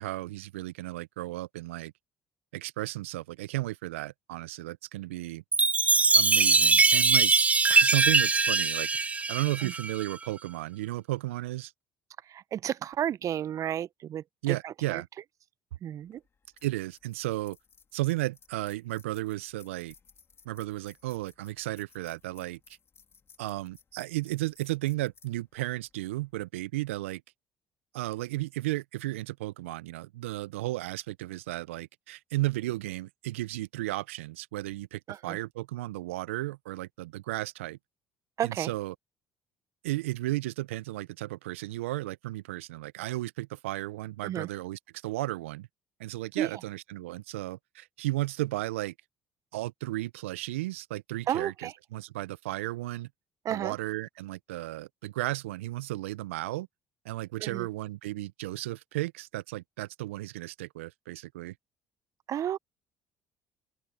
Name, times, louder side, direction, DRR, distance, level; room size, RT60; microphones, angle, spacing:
voice 1, 0.0-1.9 2.5-5.4 6.1-7.3 7.7-8.9 9.3-11.7 14.4-15.1 16.6-17.6 17.9-19.9 20.4-22.6 23.4-27.2 27.9-37.8 38.4-38.9 39.8-45.7 46.0-48.9 49.5-53.1 53.5-56.7 57.0-61.5, right 18 dB, 85° right, 0.7 m, -34 dB
Chime, 5.5-10.1, right 4 dB, 20° right, 0.3 m, -22 dB
voice 2, 12.3-15.0 15.8-16.2 35.1-35.4 38.4-38.7 44.2-44.5 46.4-46.6 51.3-51.7 53.4-53.8 57.4-57.7 62.3-62.6, right 10 dB, 55° right, 0.9 m, -32 dB
sound 1, 16.0-26.5, left 6 dB, 40° left, 4.2 m, -61 dB
open air
hypercardioid pair, 55°, 7 cm